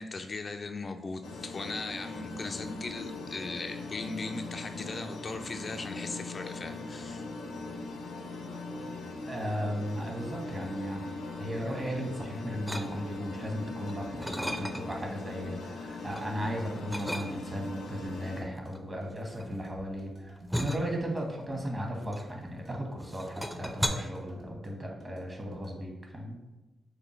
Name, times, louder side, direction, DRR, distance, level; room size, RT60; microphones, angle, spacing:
voice 1, 0.0-7.3, left 3 dB, 50° left, 5 dB, 0.4 m, -38 dB
sound 1, 1.2-18.4, left 3 dB, 85° left, 0.6 m, -41 dB
voice 2, 9.3-11.0 11.4-26.4, equal, 35° right, 1 dB, 1.4 m, -36 dB
sound 2, 12.7-13.3 13.8-15.1 15.5-16.3 16.9-17.7 18.5-22.7 23.0-23.9, equal, ahead, 0.6 m, -36 dB
sound 3, 14.0-25.7, equal, 70° right, 1.0 m, -52 dB
6.5 x 2.2 x 3.2 m, 1.1 s
supercardioid pair, 45°, 0 cm